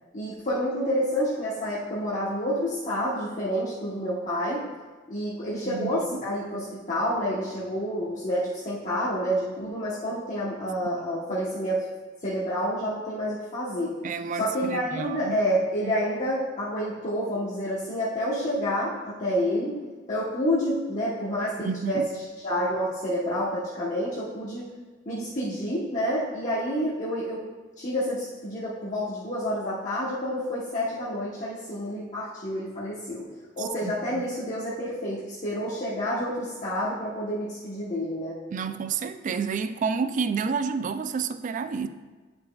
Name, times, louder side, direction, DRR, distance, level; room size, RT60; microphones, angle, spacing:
voice 1, 0.1-4.6 5.1-11.8 12.2-13.9 14.4-19.8 20.1-22.0 22.4-24.6 25.1-27.4 27.8-33.2 33.6-38.4, equal, 40° left, -8 dB, 1.0 m, -29 dB
voice 2, 5.6-6.3 11.0-11.2 14.0-15.4 15.8-15.9 21.6-22.1 33.6-34.2 38.5-41.9, right 5 dB, 40° right, 11 dB, 0.3 m, -30 dB
9.2 x 5.3 x 2.3 m, 1.3 s
head